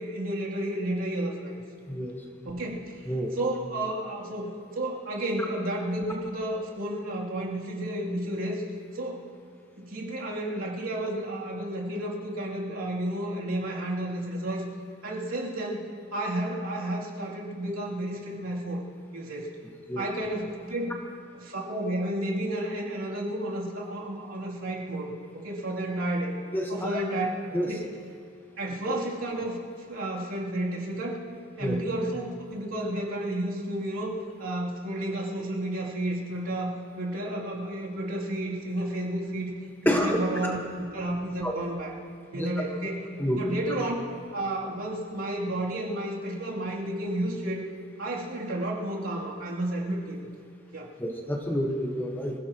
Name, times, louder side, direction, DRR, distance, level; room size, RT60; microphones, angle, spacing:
voice 1, 0.0-1.6 2.4-3.0 3.3-8.6 8.9-9.2 9.8-14.7 15.0-15.8 16.1-18.8 19.1-19.5 20.0-20.9 21.3-26.4 26.7-27.3 27.6-27.8 28.6-29.6 29.9-31.2 31.6-39.5 39.8-40.6 40.9-41.9 42.3-43.0 43.3-44.0 44.3-47.6 48.0-50.2 50.7-50.9, right 1 dB, 75° right, -4 dB, 3.1 m, -31 dB
voice 2, 26.5-27.0 27.5-27.7 28.9-29.0 31.6-31.7 39.8-40.5 41.4-41.5 42.3-42.5 43.2-43.4 51.0-52.3, equal, 10° left, 0 dB, 1.4 m, -28 dB
26.5 x 17.0 x 3.0 m, 2.4 s
head